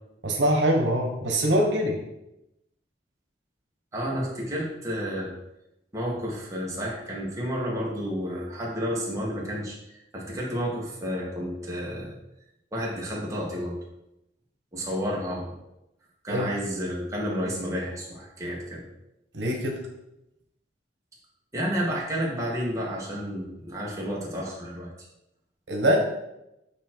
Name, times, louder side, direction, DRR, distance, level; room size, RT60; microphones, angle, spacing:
voice 1, 0.2-2.0 16.3-16.5 19.3-19.8 25.7-26.0, equal, 90° right, 1 dB, 1.2 m, -23 dB
voice 2, 3.9-5.3 5.9-9.8 10.1-12.2 12.7-13.8 14.7-15.6 16.2-18.8 21.5-24.9, equal, 20° right, -4 dB, 1.6 m, -31 dB
8.2 x 3.1 x 4.5 m, 0.88 s
head